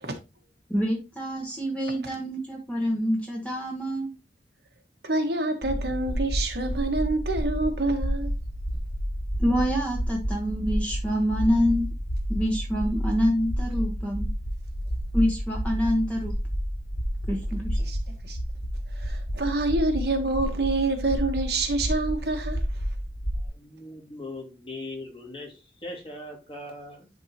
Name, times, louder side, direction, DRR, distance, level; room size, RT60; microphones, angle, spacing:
voice 1, 0.7-4.1 9.4-11.9 12.3-14.3 15.1-16.3 17.3-17.8, equal, 5° left, 1.2 m, -26 dB
voice 2, 5.0-8.3 17.8-18.4 18.9-22.6, right 2 dB, 65° right, 1.3 m, -27 dB
sound 1, 5.6-23.5, equal, 75° left, 2.6 m, -30 dB
voice 3, 23.4-27.1, left 2 dB, 30° left, 2.2 m, -40 dB
10.5 x 3.6 x 2.9 m
head